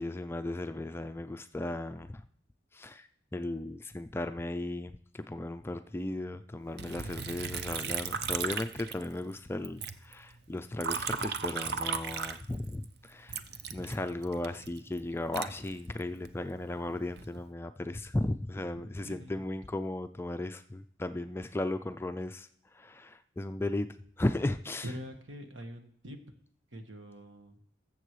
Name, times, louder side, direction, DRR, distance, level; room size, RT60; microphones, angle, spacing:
voice 1, 0.0-2.2 2.7-13.4 13.7-22.5 22.7-23.9 24.2-24.9, left 1 dB, 10° left, 9 dB, 0.3 m, -36 dB
Liquid, 6.8-9.4 9.6-12.8 13.3-16.3 16.9-17.4, right 6 dB, 55° right, 0.6 m, -36 dB
voice 2, 18.7-19.4 24.8-26.2 26.7-27.6, equal, 80° right, 5 dB, 1.4 m, -44 dB
20.5 x 7.4 x 3.2 m, 0.67 s
head